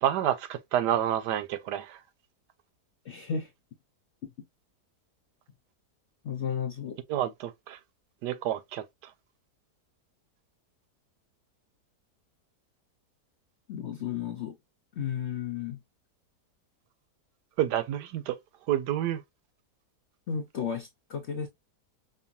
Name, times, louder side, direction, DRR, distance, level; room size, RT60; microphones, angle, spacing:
voice 1, 0.0-2.0 7.1-7.8 8.2-8.8 17.6-18.4 18.7-19.2, right 11 dB, 90° right, 1.2 m, -28 dB
voice 2, 3.0-3.5 4.2-4.3 6.2-7.0 13.7-14.6 14.9-15.8 20.3-21.5, left 7 dB, 55° left, 0.8 m, -33 dB
5.5 x 2.3 x 2.7 m
omnidirectional pair, 1.8 m